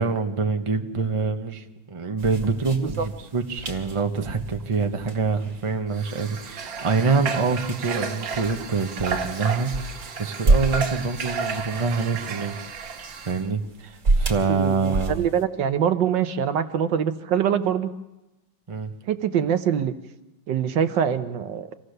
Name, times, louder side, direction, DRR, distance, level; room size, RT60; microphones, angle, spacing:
voice 1, 0.0-12.9 13.3-15.3 18.7-18.9, right 4 dB, 20° right, 4 dB, 0.9 m, -26 dB
sound 1, 2.2-15.4, right 2 dB, 40° right, 2.7 m, -30 dB
Water / Water tap faucet, 5.9-13.5, right 5 dB, 90° right, 2.1 m, -33 dB
voice 2, 14.5-17.9 19.1-19.9 20.5-21.7, right 8 dB, 75° right, 10 dB, 1.5 m, -24 dB
26.0 x 17.0 x 6.6 m, 0.99 s
omnidirectional pair, 2.0 m